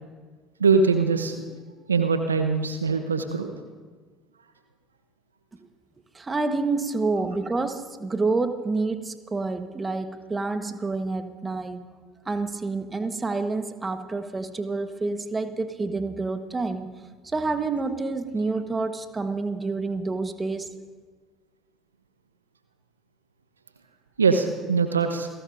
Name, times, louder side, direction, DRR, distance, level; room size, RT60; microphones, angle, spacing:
voice 1, 0.6-1.3 1.9-3.5 24.2-25.3, right 4 dB, 85° right, 7 dB, 0.8 m, -22 dB
voice 2, 6.1-11.9 12.2-17.0 17.2-20.7, right 3 dB, 20° right, 8 dB, 1.3 m, -28 dB
28.5 x 18.0 x 2.6 m, 1.5 s
figure-of-eight pair, 60°, 0 cm